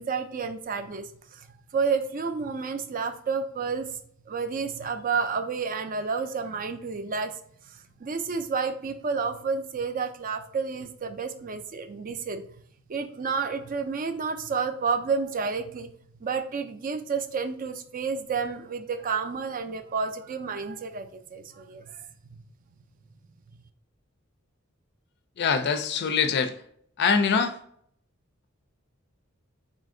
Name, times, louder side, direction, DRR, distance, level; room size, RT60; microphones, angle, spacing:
voice 1, 0.0-1.5 1.7-4.0 4.3-7.3 7.7-12.5 12.9-15.9 16.2-22.1, right 5 dB, 40° right, 9 dB, 0.4 m, -30 dB
voice 2, 25.4-26.5 27.0-27.6, left 5 dB, 55° left, 9 dB, 0.4 m, -23 dB
3.9 x 2.5 x 3.7 m, 0.65 s
head